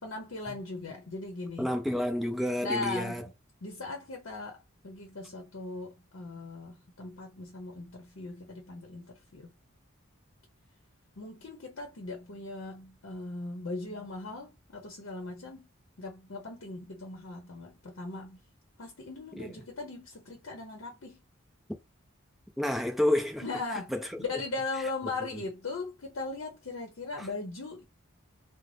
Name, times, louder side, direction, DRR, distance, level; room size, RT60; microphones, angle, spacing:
voice 1, 0.0-1.7 2.6-3.2 3.6-9.5 11.2-15.7 16.0-18.4 18.8-21.2 23.4-23.9 24.2-27.8, left 3 dB, 70° left, 0.7 m, -39 dB
voice 2, 1.6-3.2 19.4-19.6 22.6-23.4 23.9-24.2 27.2-27.3, left 1 dB, ahead, 0.5 m, -29 dB
2.5 x 2.0 x 3.3 m
head